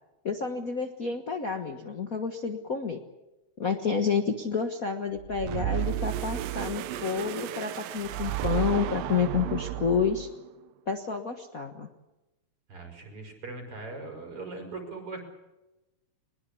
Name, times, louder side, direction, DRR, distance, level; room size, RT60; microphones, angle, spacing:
voice 1, 0.2-3.0 3.6-10.3 10.9-11.9, left 6 dB, 75° left, 5 dB, 0.7 m, -29 dB
sound 1, 5.2-10.4, right 14 dB, 80° right, 2.7 m, -33 dB
voice 2, 12.7-15.2, right 3 dB, 40° right, 4 dB, 6.1 m, -40 dB
23.0 x 21.0 x 8.5 m, 1.0 s
omnidirectional pair, 4.0 m